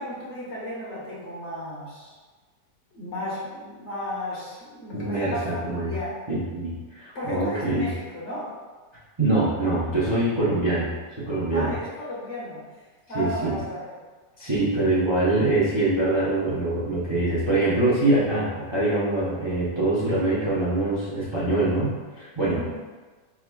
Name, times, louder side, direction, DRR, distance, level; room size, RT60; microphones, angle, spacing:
voice 1, 0.0-2.1 2.9-6.1 7.1-8.5 11.5-12.6 13.1-13.9 14.7-15.1 22.4-22.7, equal, 45° left, -7 dB, 1.4 m, -34 dB
voice 2, 4.9-5.9 6.3-7.9 9.2-10.9 11.2-11.7 13.1-13.6 14.4-22.8, right 2 dB, 45° right, -10 dB, 0.3 m, -24 dB
4.5 x 3.5 x 2.3 m, 1.3 s
omnidirectional pair, 1.8 m